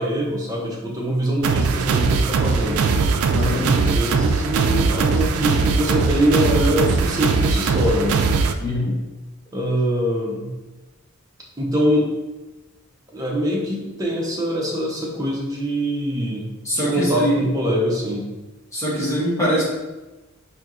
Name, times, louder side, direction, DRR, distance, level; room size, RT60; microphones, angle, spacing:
voice 1, 0.0-2.8 3.4-8.2 9.5-10.5 11.6-12.1 13.1-16.4 16.7-18.3, equal, 15° right, -3 dB, 0.6 m, -23 dB
sound 1, 1.4-8.5, right 4 dB, 90° right, 0.3 m, -20 dB
voice 2, 3.3-3.6 8.6-9.0 16.6-17.5 18.7-19.6, equal, 15° left, -8 dB, 1.0 m, -22 dB
4.4 x 2.7 x 2.5 m, 1.1 s
head